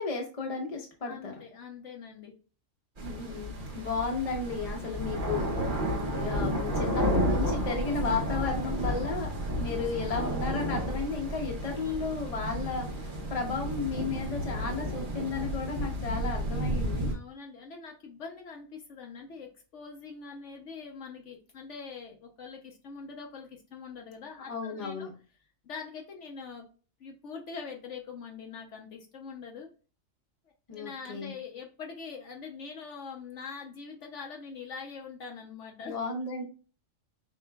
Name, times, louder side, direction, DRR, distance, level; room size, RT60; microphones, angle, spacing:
voice 1, 0.0-1.3 3.0-5.5 6.0-9.3 9.6-17.1 24.5-25.1 30.7-31.3 35.8-36.4, left 4 dB, 30° left, 1 dB, 0.9 m, -33 dB
voice 2, 1.0-2.3 8.9-9.1 17.1-25.1 25.6-26.7 27.0-29.7 30.7-36.0, left 5 dB, 65° left, 1 dB, 1.1 m, -43 dB
sound 1, 3.0-17.1, equal, 40° right, 1.1 m, -32 dB
5.0 x 3.7 x 2.3 m, 0.36 s
omnidirectional pair, 1.4 m